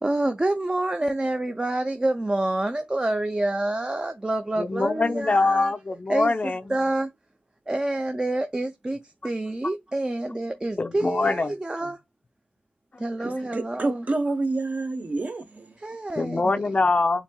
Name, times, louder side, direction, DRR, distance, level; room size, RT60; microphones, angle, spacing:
voice 1, 0.0-5.7 6.1-6.3 6.7-7.1 7.7-12.0 13.0-14.0 15.8-16.6, right 2 dB, 25° right, 0.5 m, -27 dB
voice 2, 4.6-6.6 10.8-11.6 16.2-17.2, left 3 dB, 35° left, 0.4 m, -23 dB
voice 3, 13.2-15.8, right 2 dB, 45° right, 1.0 m, -28 dB
7.1 x 2.8 x 2.2 m
cardioid pair, 70°, 4 cm